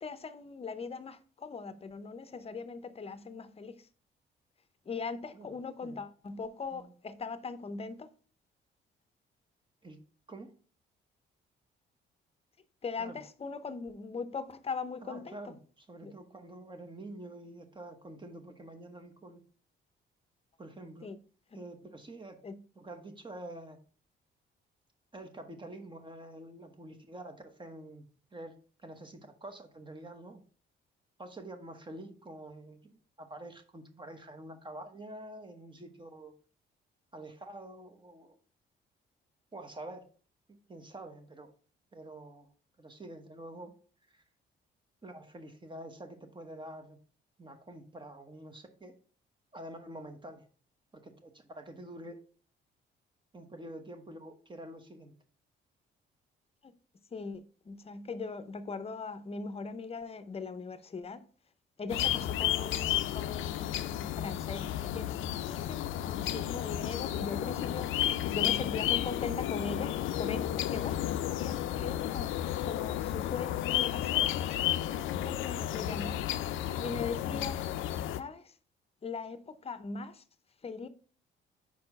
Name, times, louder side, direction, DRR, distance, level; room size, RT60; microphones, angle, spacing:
voice 1, 0.0-3.7 4.9-8.1 12.8-15.4 16.0-16.1 21.0-21.2 22.4-22.6 56.6-56.7 57.1-61.2 61.8-67.9 68.3-72.3 72.6-76.2 76.8-77.7 78.1-78.5 79.0-80.2 80.6-80.9, left 4 dB, 30° left, 0.7 m, -40 dB
voice 2, 15.0-19.4 20.6-21.1 21.5-22.4 22.7-23.8 25.1-30.4 31.2-36.3 37.1-38.4 39.5-40.1 40.5-41.5 41.9-42.5 42.8-43.7 44.1-44.2 45.0-47.0 47.4-49.0 49.5-50.4 50.9-52.2 53.3-55.1, right 1 dB, 25° right, 1.0 m, -47 dB
sound 1, 61.9-78.2, left 12 dB, 80° left, 0.4 m, -32 dB
4.8 x 4.3 x 5.3 m
cardioid pair, 90°, 20 cm